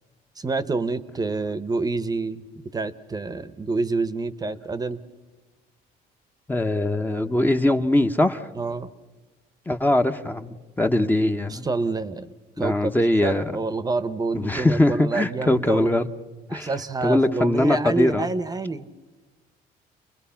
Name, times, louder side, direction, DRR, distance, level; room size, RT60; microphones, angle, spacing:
voice 1, 0.4-2.4 2.7-5.0 8.5-8.9 11.5-12.3 12.6-16.0 16.5-18.9, right 3 dB, 20° right, 13 dB, 0.9 m, -27 dB
voice 2, 6.5-8.5 9.7-11.7 12.6-13.4 14.3-16.1 16.5-16.7 17.0-18.3, left 1 dB, 10° left, 7 dB, 0.9 m, -22 dB
30.0 x 21.5 x 5.8 m, 1.2 s
cardioid pair, 110°, 17 cm